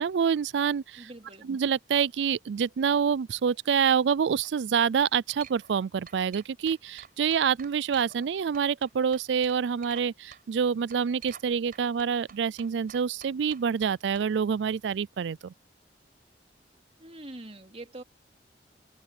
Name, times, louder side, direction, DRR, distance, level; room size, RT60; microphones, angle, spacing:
voice 1, 0.0-1.1 1.4-15.5, right 7 dB, 75° right, 0.4 m, -27 dB
voice 2, 1.0-1.5 17.0-18.0, right 1 dB, 35° right, 3.2 m, -44 dB
sound 1, 4.2-4.5 5.0-5.8 6.1-8.3 8.5-10.1 10.3-10.4 10.9-11.5 11.7-14.3, right 8 dB, 55° right, 4.9 m, -49 dB
head